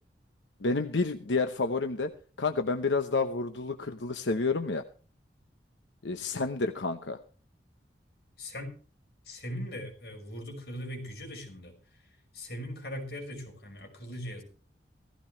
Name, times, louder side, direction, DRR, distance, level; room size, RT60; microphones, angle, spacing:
voice 1, 0.6-2.1 2.4-4.8 6.0-7.2, left 3 dB, 90° left, 0.9 m, -29 dB
voice 2, 8.4-8.7 9.2-11.8 12.3-14.4, equal, 60° left, 5.8 m, -40 dB
17.0 x 15.5 x 3.2 m
head